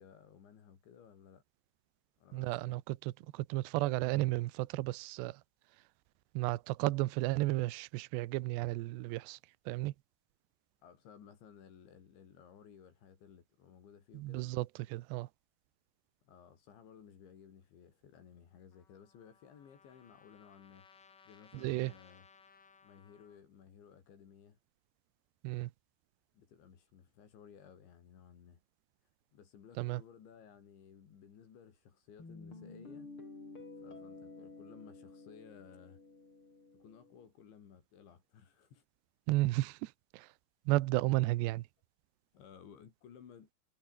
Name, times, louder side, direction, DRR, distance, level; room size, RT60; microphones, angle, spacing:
voice 1, 0.0-1.4 2.2-2.8 10.8-14.6 16.2-20.9 21.3-22.3 22.8-24.6 26.3-28.6 29.3-33.1 33.8-36.0 36.7-38.8 42.3-43.5, left 7 dB, 70° left, 6.0 m, -57 dB
voice 2, 2.3-3.0 3.3-5.4 6.4-9.4 9.7-9.9 14.1-14.7 14.9-15.3 21.5-21.9 25.4-25.7 29.8-30.0 39.3-40.3 40.7-41.6, right 19 dB, 80° right, 2.8 m, -33 dB
Trumpet, 18.7-23.4, left 5 dB, 85° left, 9.0 m, -63 dB
Guitar, 32.2-37.2, left 3 dB, 25° left, 6.5 m, -51 dB
omnidirectional pair, 5.5 m